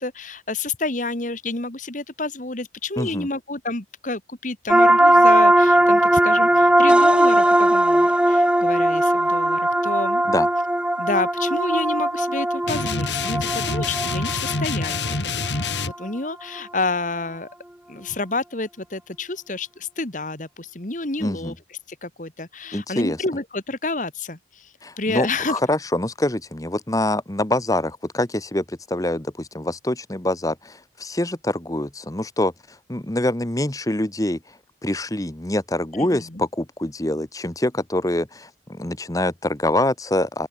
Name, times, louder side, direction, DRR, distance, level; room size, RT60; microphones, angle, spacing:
voice 1, 0.0-10.2 11.0-15.2 15.5-17.5 17.9-21.5 21.9-25.6 36.0-36.4, left 3 dB, 45° left, 2.0 m, -29 dB
voice 2, 3.0-3.3 10.3-10.5 21.2-21.5 22.7-23.2 24.8-32.5 32.9-34.4 34.8-40.5, left 1 dB, 20° left, 1.2 m, -25 dB
sound 1, 4.7-16.1, right 1 dB, 5° right, 0.7 m, -18 dB
sound 2, 12.7-15.9, left 4 dB, 85° left, 3.2 m, -26 dB
open air
head